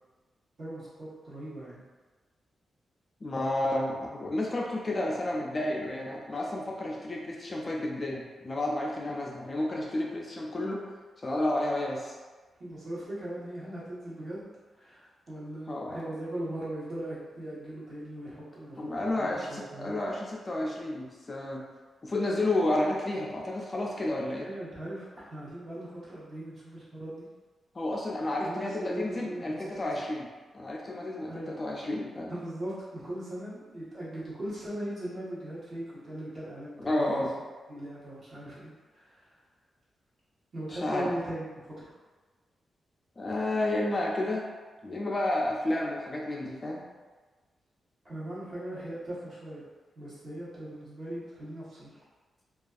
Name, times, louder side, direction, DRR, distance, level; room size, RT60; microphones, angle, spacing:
voice 1, 0.6-1.8 12.6-14.5 14.8-19.9 24.4-27.2 28.4-30.0 31.3-31.5 32.3-37.2 37.7-39.3 40.5-41.8 48.0-49.7 49.9-52.0, right 1 dB, 45° right, -10 dB, 1.1 m, -39 dB
voice 2, 3.2-10.9 11.2-12.2 15.7-16.0 18.8-21.7 22.0-24.5 27.7-30.3 30.5-32.3 36.8-37.3 40.7-41.1 43.2-44.4 44.8-46.8, left 1 dB, 25° left, -2 dB, 0.3 m, -31 dB
2.5 x 2.3 x 2.3 m, 1.3 s
wide cardioid pair, 130°, 0 cm